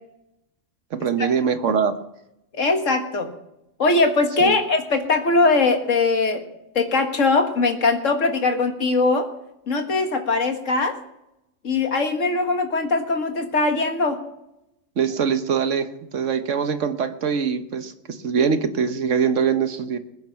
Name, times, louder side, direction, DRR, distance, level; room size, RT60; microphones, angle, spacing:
voice 1, 0.9-2.0 4.4-4.5 15.0-20.0, right 6 dB, 70° right, 9 dB, 1.4 m, -23 dB
voice 2, 2.5-3.3 3.8-6.4 6.8-9.3 9.7-11.0 11.6-14.2, left 3 dB, 80° left, 5 dB, 2.1 m, -21 dB
21.0 x 9.5 x 5.8 m, 0.86 s
omnidirectional pair, 1.3 m